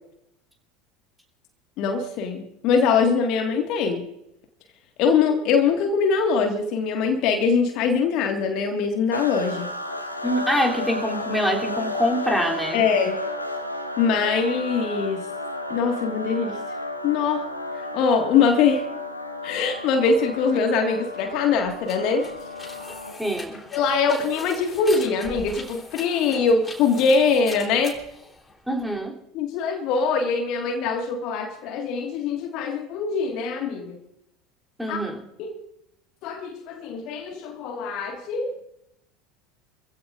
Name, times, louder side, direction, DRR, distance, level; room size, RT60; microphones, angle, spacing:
voice 1, 1.8-4.0 5.0-9.7 12.7-13.2 14.0-15.3 15.7-16.5 17.0-17.5 17.9-18.9 19.4-22.3 23.7-28.0 29.3-34.0 34.9-35.0 35.4-35.5 36.2-38.5, left 5 dB, 50° left, 4 dB, 1.8 m, -23 dB
sound 1, 9.1-23.3, left 2 dB, 90° left, 1.4 m, -32 dB
voice 2, 10.2-12.8 23.2-23.6 28.7-29.2 34.8-35.3, equal, 5° right, -1 dB, 3.3 m, -25 dB
sound 2, 21.1-29.0, left 2 dB, 15° left, 3.6 m, -42 dB
26.0 x 15.5 x 2.6 m, 0.82 s
figure-of-eight pair, 75°, 0 cm